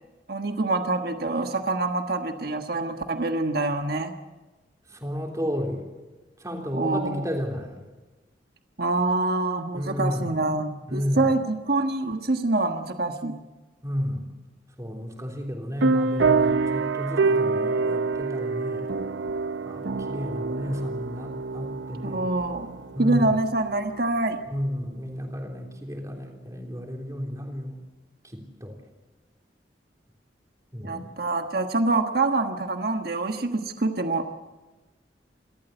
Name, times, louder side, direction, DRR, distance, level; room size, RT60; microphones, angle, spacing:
voice 1, 0.3-4.1 6.7-7.2 8.8-13.3 22.0-24.4 30.8-34.2, right 2 dB, 55° right, 6 dB, 1.4 m, -26 dB
voice 2, 4.9-5.9 6.4-7.9 9.7-10.4 10.9-11.4 13.8-14.3 14.8-18.9 19.6-22.3 23.0-23.3 24.5-27.8 28.2-28.8 30.7-31.1, equal, 20° right, 1 dB, 3.5 m, -32 dB
sound 1, 15.8-23.9, right 4 dB, 85° right, 0.7 m, -26 dB
28.5 x 13.5 x 8.0 m, 1.2 s
head